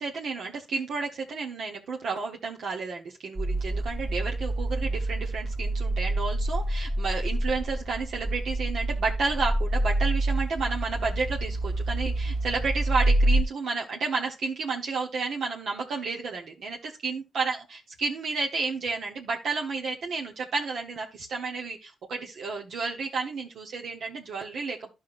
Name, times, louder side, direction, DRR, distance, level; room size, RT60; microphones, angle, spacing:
voice 1, 0.0-24.9, right 4 dB, 75° right, 0 dB, 1.2 m, -31 dB
sound 1, 3.4-13.4, right 1 dB, 45° right, 1.8 m, -27 dB
11.5 x 5.6 x 2.5 m, 0.26 s
cardioid pair, 65°, 0 cm